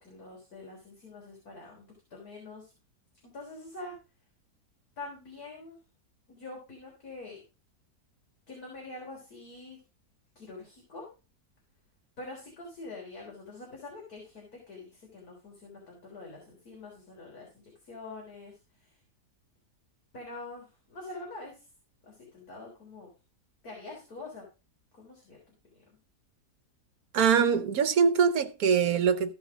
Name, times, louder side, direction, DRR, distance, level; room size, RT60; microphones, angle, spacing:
voice 1, 0.0-1.9 2.1-2.7 3.2-4.0 5.0-5.8 6.3-7.4 8.5-9.8 10.4-11.1 12.2-19.0 20.1-21.6 22.0-23.1 23.6-24.5 24.9-25.5 25.9-26.0, left 2 dB, 65° left, 4.3 m, -45 dB
voice 2, 27.1-29.3, right 6 dB, 65° right, 1.4 m, -23 dB
15.0 x 5.5 x 5.0 m
omnidirectional pair, 1.8 m